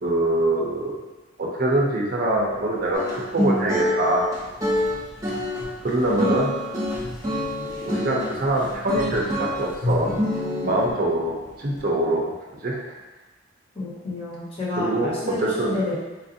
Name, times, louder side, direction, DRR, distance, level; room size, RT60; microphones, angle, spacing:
voice 1, 0.0-1.0 1.4-4.2 5.8-6.5 7.6-10.1 10.6-12.3 12.6-12.8 14.8-15.9, right 1 dB, 50° right, -3 dB, 0.6 m, -24 dB
sound 1, 2.2-11.8, left 1 dB, 90° left, 1.0 m, -37 dB
sound 2, 2.9-8.3 8.9-9.6 10.0-10.9, left 1 dB, 20° right, 1.0 m, -26 dB
voice 2, 13.7-15.9, left 2 dB, 35° left, -9 dB, 1.3 m, -30 dB
4.2 x 2.5 x 2.7 m, 1.1 s
head